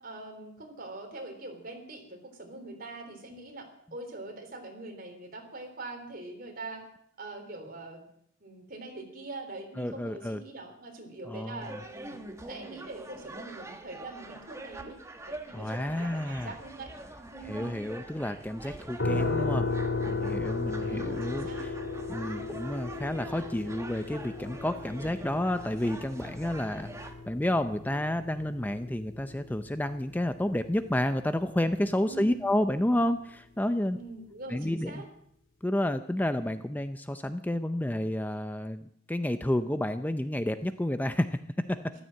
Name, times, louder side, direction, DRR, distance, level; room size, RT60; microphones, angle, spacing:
voice 1, 0.0-6.9 7.2-8.1 8.4-15.0 15.3-16.9 17.3-17.7 20.8-21.7 22.2-22.6 32.0-32.5 33.9-35.1 41.9-42.0, right 2 dB, 50° right, 4 dB, 3.6 m, -43 dB
voice 2, 9.8-10.4 11.3-11.7 15.5-16.5 17.5-19.7 20.0-21.7 22.1-34.0 34.5-35.0 35.6-41.9, left 1 dB, 10° left, 10 dB, 0.5 m, -30 dB
sound 1, 11.6-27.1, right 2 dB, 15° right, 1.3 m, -45 dB
sound 2, 19.0-31.8, left 3 dB, 75° left, 2.1 m, -35 dB
14.0 x 13.0 x 7.6 m, 0.68 s
head